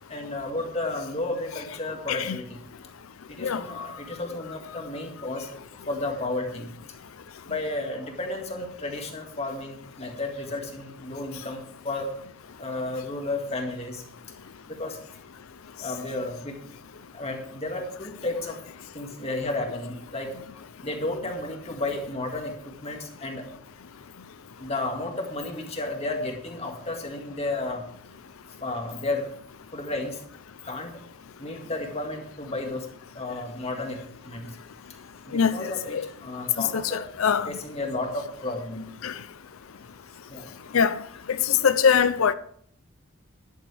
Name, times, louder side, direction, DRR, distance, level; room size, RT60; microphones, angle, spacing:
voice 1, 0.1-2.6 3.3-5.5 5.9-6.7 7.4-12.1 12.6-14.0 14.7-15.0 15.8-16.6 17.1-18.6 18.9-20.4 20.8-23.5 24.6-27.8 28.6-29.3 29.7-30.2 30.6-31.0 31.4-32.9 33.1-34.6 35.3-37.1 37.5-38.9 40.3-40.5, left 2 dB, 30° left, 2.0 m, -32 dB
voice 2, 3.4-3.8 35.3-36.1 36.6-37.5 39.0-39.1 40.7-41.0 41.3-42.3, left 7 dB, 80° left, 0.5 m, -23 dB
12.5 x 11.0 x 3.4 m
head